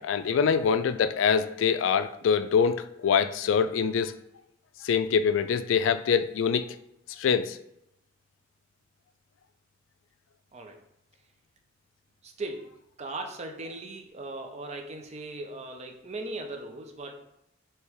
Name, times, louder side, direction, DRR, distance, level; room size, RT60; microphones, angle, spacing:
voice 1, 0.0-4.1 4.8-6.7 7.2-7.6, left 6 dB, 75° left, 12 dB, 0.3 m, -24 dB
voice 2, 12.2-12.7 13.0-17.2, right 2 dB, 35° right, 4 dB, 0.6 m, -38 dB
3.4 x 3.0 x 4.7 m, 0.81 s
head